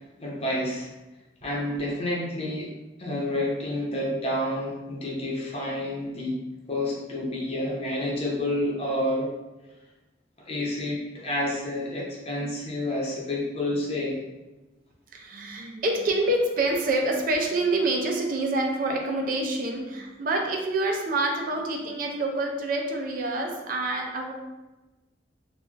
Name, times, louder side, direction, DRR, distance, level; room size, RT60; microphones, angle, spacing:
voice 1, 0.2-0.9 1.4-2.7 3.0-6.3 6.7-9.3 10.4-14.2, left 1 dB, 30° left, -4 dB, 0.6 m, -29 dB
voice 2, 15.1-24.3, right 2 dB, 45° right, 2 dB, 0.3 m, -27 dB
2.4 x 2.1 x 3.7 m, 1.1 s
head